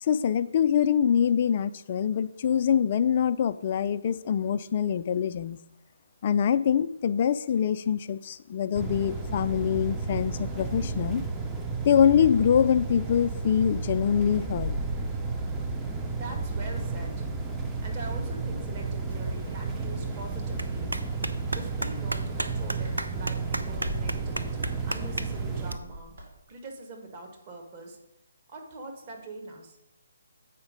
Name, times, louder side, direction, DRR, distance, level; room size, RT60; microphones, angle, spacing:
voice 1, 0.0-5.6 6.2-11.2 11.8-14.7, left 8 dB, 40° left, 13 dB, 0.4 m, -24 dB
sound 1, 8.7-25.8, right 4 dB, 10° right, 0.6 m, -32 dB
sound 2, 14.4-15.8 16.1-18.3 18.7-20.3 21.4-21.7 22.1-26.4, right 1 dB, 60° right, 3.1 m, -41 dB
voice 2, 16.0-17.1 17.8-20.9 21.5-26.1 26.5-28.0 28.5-29.8, right 2 dB, 30° right, 2 dB, 1.6 m, -43 dB
Clapping, 19.1-25.7, right 2 dB, 85° right, 0.6 m, -37 dB
8.1 x 5.1 x 5.2 m, 0.88 s
figure-of-eight pair, 145°, 0 cm